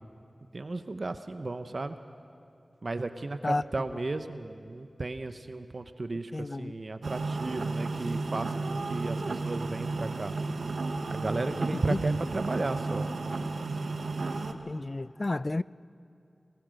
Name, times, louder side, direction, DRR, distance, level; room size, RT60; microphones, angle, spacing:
voice 1, 0.5-2.0 2.8-10.3 11.1-13.1, right 3 dB, 55° right, 0.9 m, -34 dB
voice 2, 6.3-6.7 11.7-12.2 14.7-15.6, left 2 dB, 45° left, 0.4 m, -31 dB
sound 1, 7.0-14.5, right 3 dB, 80° right, 1.1 m, -33 dB
21.5 x 19.0 x 6.5 m
wide cardioid pair, 50°, 0 cm